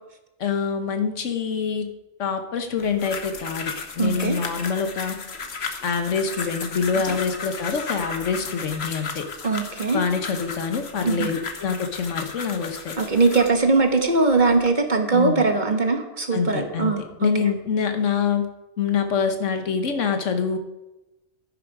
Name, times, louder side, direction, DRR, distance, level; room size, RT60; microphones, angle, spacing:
voice 1, 0.4-1.9 2.2-5.2 5.8-9.3 9.9-13.0 15.1-15.5 16.3-16.9 17.2-18.5 18.8-20.6, left 6 dB, 75° left, 7 dB, 1.4 m, -25 dB
sound 1, 2.8-13.6 14.2-14.7, left 5 dB, 60° left, 1.3 m, -34 dB
voice 2, 4.0-4.4 6.9-7.0 9.4-10.0 11.0-11.3 13.0-17.3, right 3 dB, 40° right, 4 dB, 1.3 m, -21 dB
11.0 x 10.0 x 4.8 m, 1.0 s
omnidirectional pair, 1.3 m